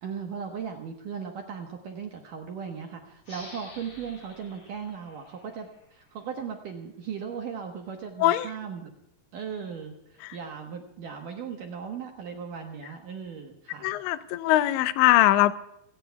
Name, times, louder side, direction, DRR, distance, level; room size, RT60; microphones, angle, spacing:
voice 1, 0.0-8.9 9.3-13.9, right 6 dB, 65° right, 2 dB, 2.2 m, -37 dB
sound 1, 3.2-6.5, left 2 dB, 35° left, 6.1 m, -50 dB
voice 2, 13.8-15.5, left 15 dB, 85° left, 12 dB, 3.0 m, -21 dB
27.5 x 17.5 x 2.3 m, 0.85 s
omnidirectional pair, 5.2 m